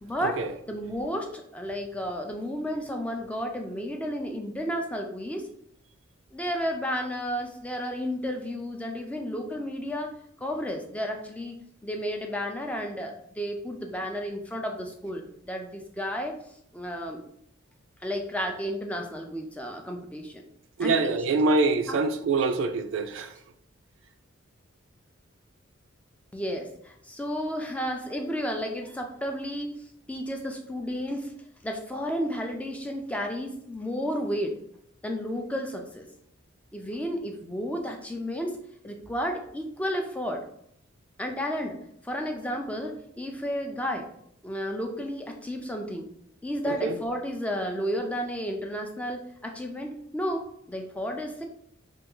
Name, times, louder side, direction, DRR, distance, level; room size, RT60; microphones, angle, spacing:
voice 1, 0.0-0.4 0.7-5.5 6.3-10.1 10.4-11.6 11.8-16.4 16.7-17.2 18.0-20.4 20.8-21.2 21.9-22.0 26.3-29.7 30.1-31.3 31.6-34.6 35.0-36.1 36.7-38.5 38.8-40.4 41.2-41.8 42.0-44.1 44.4-46.1 46.4-51.4, equal, 5° left, 0.3 m, -32 dB
voice 2, 20.8-23.3 46.7-47.0, right 3 dB, 70° right, 0.3 m, -25 dB
3.4 x 2.3 x 3.0 m
head